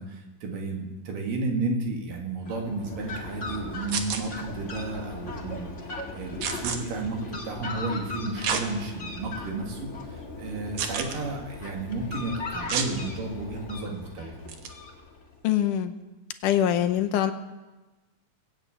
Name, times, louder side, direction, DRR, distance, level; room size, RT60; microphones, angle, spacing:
voice 1, 0.0-5.7 6.1-14.4, right 3 dB, 75° right, 2 dB, 3.7 m, -32 dB
Fowl, 2.4-15.4, left 3 dB, 30° left, 1.6 m, -38 dB
sound 1, 3.9-4.2 6.4-6.8 8.4-8.6 9.3-9.4 10.8-11.2 12.7-12.9 14.5-14.7, right 7 dB, 60° right, 2.0 m, -29 dB
voice 2, 15.4-15.9 16.4-17.3, left 11 dB, 80° left, 10 dB, 2.1 m, -23 dB
19.5 x 8.2 x 8.7 m, 1.2 s
omnidirectional pair, 3.9 m